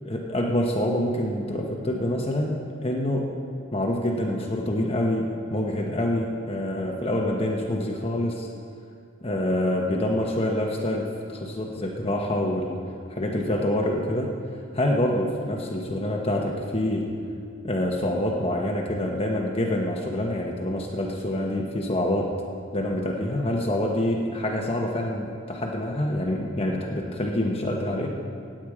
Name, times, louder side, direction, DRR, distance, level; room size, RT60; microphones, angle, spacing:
voice 1, 0.0-3.3 3.7-8.5 9.2-12.8 13.1-14.3 14.7-17.1 17.6-22.3 22.7-28.1, left 1 dB, 30° left, 0 dB, 1.1 m, -26 dB
16.5 x 8.9 x 4.9 m, 2.4 s
head